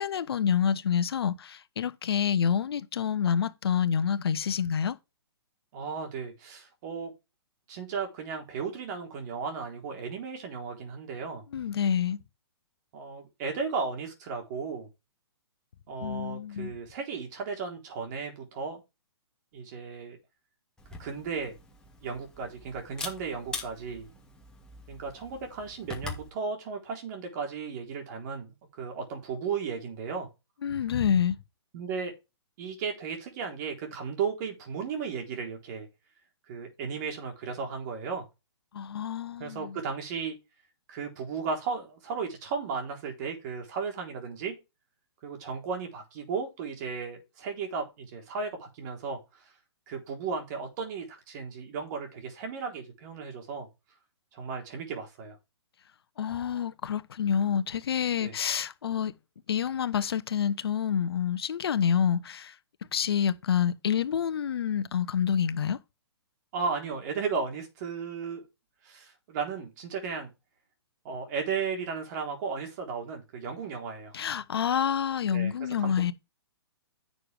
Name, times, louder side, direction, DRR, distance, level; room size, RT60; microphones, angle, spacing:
voice 1, 0.0-5.0 11.5-12.2 16.0-16.7 30.6-31.4 38.7-39.8 56.2-59.1 59.5-62.5 62.9-65.8 74.1-76.1, left 8 dB, 65° left, 1.1 m, -28 dB
voice 2, 5.7-7.1 7.7-11.4 12.9-14.9 15.9-18.8 19.5-20.2 21.0-21.6 22.0-24.1 24.9-30.3 31.7-32.1 32.6-35.9 36.5-38.3 39.4-40.4 40.9-44.6 45.2-49.4 49.9-53.7 54.3-55.4 58.2-58.4 66.5-68.5 68.8-70.3 71.0-74.2 75.3-76.1, right 5 dB, 40° right, 4.0 m, -35 dB
Camera, 20.8-26.3, left 3 dB, 5° left, 2.3 m, -43 dB
10.0 x 6.7 x 3.6 m
hypercardioid pair, 135°, 14 cm